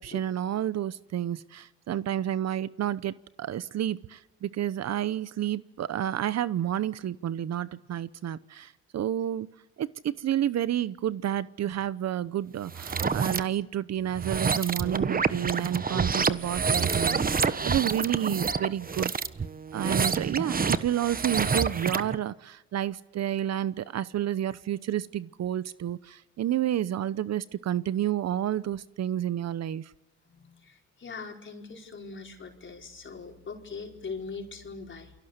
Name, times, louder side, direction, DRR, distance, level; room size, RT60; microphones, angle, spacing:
voice 1, 0.0-9.5 9.8-19.1 19.7-29.9, right 11 dB, 60° right, 17 dB, 0.9 m, -30 dB
sound 1, 12.7-13.4 14.1-22.1, right 5 dB, 30° right, 1.2 m, -28 dB
voice 2, 30.2-35.1, left 4 dB, 40° left, 2 dB, 4.9 m, -41 dB
28.5 x 22.5 x 8.1 m, 0.91 s
cardioid pair, 90°, 30 cm